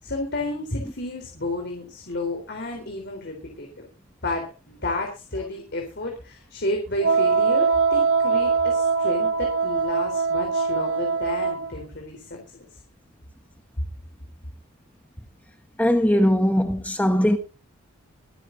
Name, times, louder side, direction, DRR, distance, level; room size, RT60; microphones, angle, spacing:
voice 1, 0.0-3.8 4.2-12.7, left 2 dB, 50° left, 3.9 m, -31 dB
Wind instrument woodwind instrument, 7.0-11.7, right 5 dB, 55° right, 1.1 m, -22 dB
voice 2, 15.8-17.4, equal, 5° left, 1.2 m, -20 dB
25.0 x 11.0 x 2.7 m
head